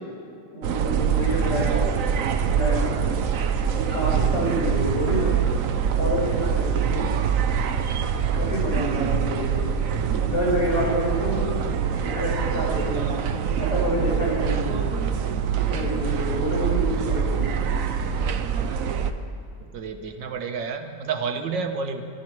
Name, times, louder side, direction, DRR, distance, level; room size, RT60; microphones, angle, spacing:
voice 1, 0.5-1.9 2.4-3.0 3.7-5.3 6.0-7.1 8.3-9.7 10.2-11.5 12.0-14.8 15.5-17.5, equal, 75° left, -4 dB, 5.8 m, -28 dB
sound 1, 0.6-19.1, right 7 dB, 60° right, 1.0 m, -24 dB
voice 2, 1.4-1.9 13.0-13.1 14.5-15.0 16.6-16.8 19.6-22.0, right 5 dB, 85° right, 6 dB, 1.8 m, -31 dB
26.0 x 12.0 x 4.6 m, 2.5 s
omnidirectional pair, 1.9 m